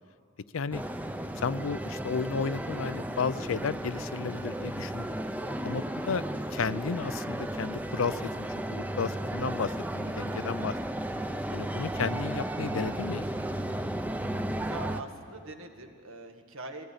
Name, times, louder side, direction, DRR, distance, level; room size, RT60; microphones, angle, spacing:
sound 1, 0.7-15.0, right 1 dB, 10° right, 0.6 m, -34 dB
voice 1, 1.4-5.2 5.6-6.2 6.5-10.7 11.5-13.3, left 5 dB, 80° left, 16 dB, 0.5 m, -33 dB
voice 2, 5.4-6.1 14.6-16.8, right 2 dB, 90° right, 4 dB, 1.7 m, -44 dB
21.0 x 15.5 x 8.2 m, 2.3 s
head